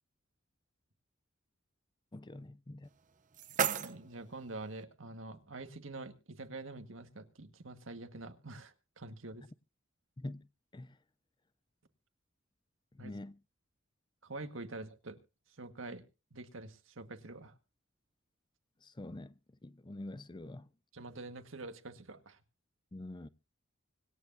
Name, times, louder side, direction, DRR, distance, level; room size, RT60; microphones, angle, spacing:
voice 1, 2.1-2.9 10.2-10.5 10.7-11.0 12.9-13.4 18.8-20.7 22.9-23.3, left 1 dB, 25° left, 0.6 m, -46 dB
sound 1, 2.8-4.8, right 7 dB, 40° right, 0.8 m, -37 dB
voice 2, 3.5-9.4 13.0-13.1 14.2-15.2 15.6-16.0 16.3-17.5 20.9-22.4, right 2 dB, 75° right, 1.7 m, -46 dB
25.5 x 9.4 x 2.7 m
head